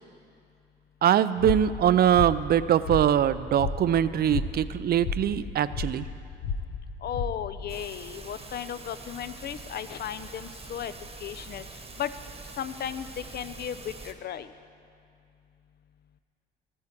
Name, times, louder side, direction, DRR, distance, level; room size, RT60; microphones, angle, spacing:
voice 1, 1.0-6.1, right 10 dB, 50° right, 15 dB, 0.4 m, -23 dB
sound 1, 1.4-7.8, left 4 dB, 80° left, 0.8 m, -34 dB
voice 2, 7.0-10.9 11.2-11.6 12.0-12.1 12.6-13.1 13.3-14.5, left 9 dB, 55° left, 13 dB, 0.5 m, -35 dB
sound 2, 7.7-14.1, right 4 dB, 30° right, 1.1 m, -44 dB
13.5 x 9.8 x 4.5 m, 2.4 s
cardioid pair, 90°, 20 cm